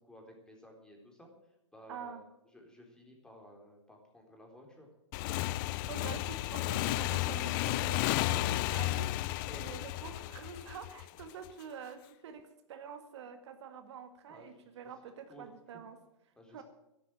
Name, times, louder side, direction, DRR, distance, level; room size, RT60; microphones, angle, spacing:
voice 1, 0.1-1.3 1.7-2.3 2.5-4.9 9.5-9.9 14.3-14.7 15.3-15.5 16.4-16.6, equal, 5° left, 1 dB, 3.9 m, -55 dB
voice 2, 1.9-2.2 5.9-9.1 9.5-16.0 16.5-16.6, right 7 dB, 65° right, 8 dB, 1.9 m, -47 dB
Motorcycle / Engine, 5.1-11.5, left 17 dB, 40° left, 0.5 m, -33 dB
13.5 x 10.5 x 7.7 m, 0.92 s
hypercardioid pair, 125°, 16 cm